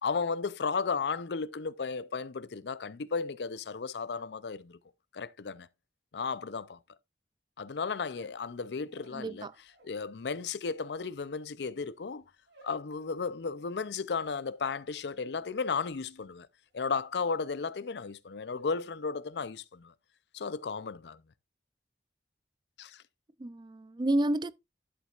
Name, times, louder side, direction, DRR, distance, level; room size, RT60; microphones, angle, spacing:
voice 1, 0.0-4.8 5.1-5.7 6.1-6.8 7.6-9.5 9.8-12.2 12.6-16.5 16.7-19.9 20.3-21.2 22.8-23.0, left 5 dB, 70° left, 0.5 m, -34 dB
sound 1, 8.1-10.0 10.3-17.1 17.4-17.9 18.2-18.7, right 2 dB, 90° right, 4.8 m, -62 dB
voice 2, 9.1-9.5 23.4-24.5, right 1 dB, 25° right, 0.4 m, -30 dB
11.5 x 7.3 x 2.4 m
head